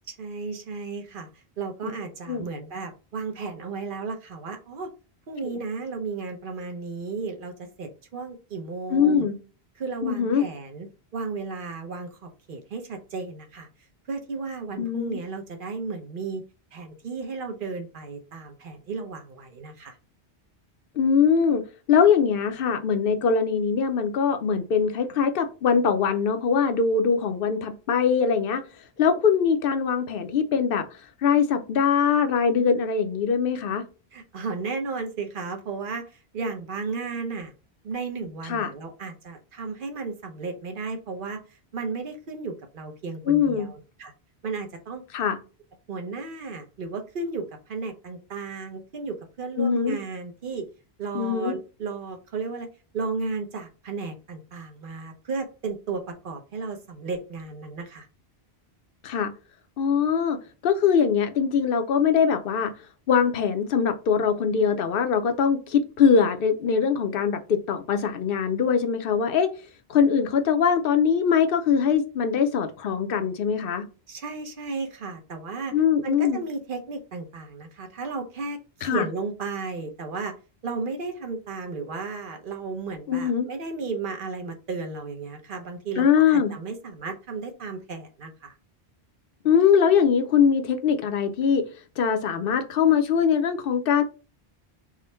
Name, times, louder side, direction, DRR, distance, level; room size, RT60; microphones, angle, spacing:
voice 1, 0.1-1.3 1.6-4.9 5.3-9.3 9.8-10.9 11.1-13.7 14.1-16.4 16.7-20.0 34.1-36.0 36.3-37.5 37.8-41.4 41.7-44.1 44.4-45.0 45.9-50.6 51.0-52.7 52.9-58.1 74.1-75.7 76.0-80.3 80.6-88.5, right 4 dB, 55° right, 0.9 m, -34 dB
voice 2, 8.9-9.4 10.0-10.4 14.8-15.2 21.0-21.6 21.9-28.6 29.0-30.8 31.2-33.8 38.4-38.7 43.3-43.7 45.1-45.4 49.6-50.0 51.1-51.6 59.0-59.3 59.8-62.7 63.1-69.5 69.9-73.9 75.7-76.4 78.8-79.1 83.1-83.5 86.0-86.5 89.4-91.7 92.0-94.0, left 6 dB, 65° left, 0.7 m, -22 dB
3.6 x 2.1 x 4.2 m
omnidirectional pair, 1.1 m